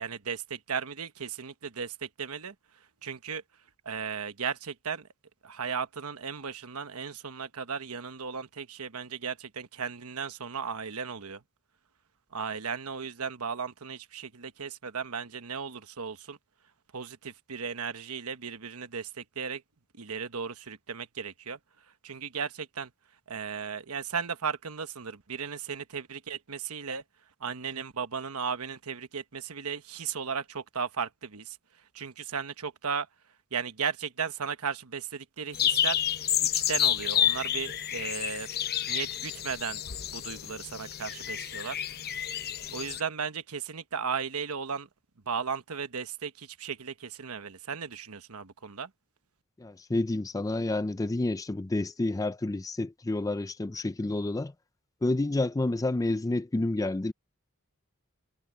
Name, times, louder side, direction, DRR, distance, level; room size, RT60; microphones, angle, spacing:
voice 1, 0.0-2.5 3.0-3.4 3.8-5.1 5.4-11.4 12.3-16.4 16.9-19.6 19.9-21.6 22.0-22.9 23.3-27.0 27.4-31.6 31.9-33.1 33.5-36.0 36.4-38.5 38.9-39.8 40.1-41.8 42.7-44.9 45.3-48.9, right 6 dB, 75° right, 1.2 m, -35 dB
sound 1, 35.5-43.0, left 10 dB, 45° left, 0.8 m, -30 dB
voice 2, 49.6-54.5 55.0-57.1, left 2 dB, 15° left, 0.4 m, -29 dB
head